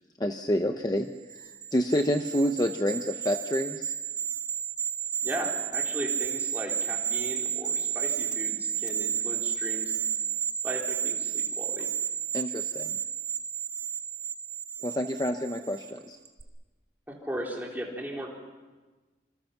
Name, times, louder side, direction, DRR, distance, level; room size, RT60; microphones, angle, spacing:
voice 1, 0.2-3.9 12.3-13.0 14.8-16.2, equal, 20° left, 6 dB, 0.8 m, -28 dB
sound 1, 1.3-15.9 16.2-16.4, right 9 dB, 40° right, 2.1 m, -32 dB
voice 2, 5.2-9.9 10.6-11.9 17.1-18.3, equal, 10° right, -2 dB, 4.0 m, -37 dB
26.5 x 26.5 x 6.0 m, 1.3 s
head